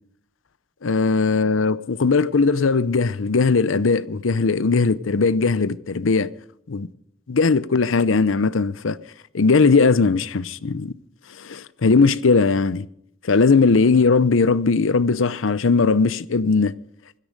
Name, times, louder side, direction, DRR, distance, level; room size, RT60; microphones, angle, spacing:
voice 1, 0.8-6.3 6.7-6.9 7.3-9.0 9.3-10.9 11.4-12.9 13.2-16.7, left 4 dB, 80° left, 0.6 m, -19 dB
16.5 x 13.5 x 5.3 m
head